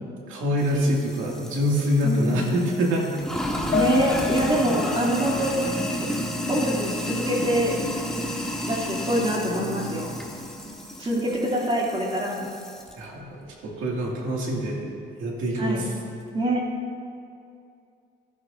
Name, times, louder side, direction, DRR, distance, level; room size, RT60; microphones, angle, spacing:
voice 1, 0.3-3.1 13.0-13.3 13.6-14.9 15.2-15.9, equal, 85° right, -2 dB, 2.2 m, -25 dB
Sink (filling or washing), 0.6-12.9, left 1 dB, 5° left, 1.4 m, -31 dB
voice 2, 2.0-2.5 3.7-5.6 6.5-7.7 8.2-8.3 8.7-10.1 11.0-12.5 15.6-15.8 16.3-16.6, right 1 dB, 25° right, -3 dB, 2.7 m, -25 dB
Piano, 3.7-8.2 8.6-8.7 9.1-9.2, left 9 dB, 45° left, 0.6 m, -32 dB
15.5 x 11.0 x 2.6 m, 2.5 s
cardioid pair, 90°, 20 cm